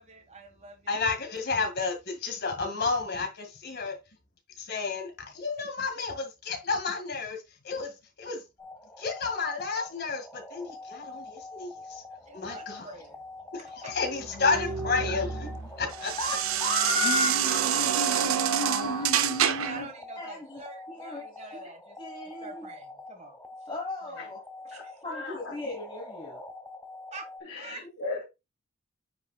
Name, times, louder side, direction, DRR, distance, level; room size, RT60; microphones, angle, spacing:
voice 1, 0.0-1.1 11.2-11.3 12.3-13.2 13.8-14.0 14.5-14.7 19.6-22.0 22.4-23.7 24.1-24.2 24.6-25.0 27.1-27.8, right 3 dB, 35° right, 1.6 m, -46 dB
voice 2, 0.9-4.0 4.6-7.9 8.2-8.4 9.0-12.0 12.3-12.9 13.5-15.3 15.8-16.1, left 4 dB, 50° left, 2.0 m, -31 dB
sound 1, 8.6-27.4, left 2 dB, 10° left, 0.9 m, -45 dB
sound 2, 14.0-19.9, right 9 dB, 85° right, 0.5 m, -28 dB
voice 3, 14.2-14.6 15.0-15.4 17.0-19.9 24.2-24.3 24.7-25.5 27.5-28.2, left 1 dB, 80° left, 2.5 m, -36 dB
voice 4, 16.2-19.1 20.2-20.6 20.9-21.3 22.0-22.7 23.7-24.4 25.0-26.4, left 3 dB, 25° left, 1.3 m, -35 dB
9.3 x 5.4 x 2.3 m
head